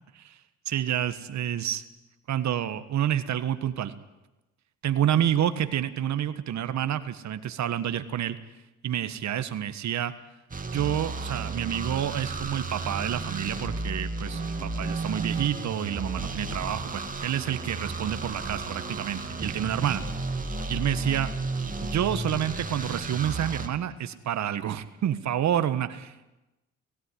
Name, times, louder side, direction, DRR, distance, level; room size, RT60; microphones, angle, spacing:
voice 1, 0.7-1.8 2.3-3.9 4.8-8.4 8.8-10.1 10.7-20.0 20.7-21.3 21.8-26.3, right 10 dB, 65° right, 11 dB, 1.5 m, -28 dB
sound 1, 10.5-23.7, right 3 dB, 25° right, 2.4 m, -33 dB
17.5 x 17.5 x 9.9 m, 1.0 s
cardioid pair, 90°, 30 cm